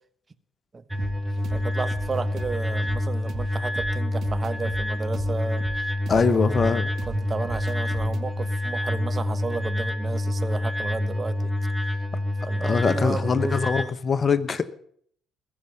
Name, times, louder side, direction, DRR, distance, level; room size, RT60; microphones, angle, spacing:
sound 1, 0.9-13.9, left 1 dB, ahead, 1.8 m, -27 dB
sound 2, 1.0-10.6, right 8 dB, 50° right, 1.7 m, -41 dB
voice 1, 1.5-5.6 6.1-11.5 12.4-13.9, right 4 dB, 30° right, 11 dB, 1.2 m, -32 dB
voice 2, 6.1-6.9 12.6-14.7, left 5 dB, 40° left, 15 dB, 1.1 m, -23 dB
21.0 x 7.0 x 9.3 m, 0.63 s
hypercardioid pair, 50°, 0 cm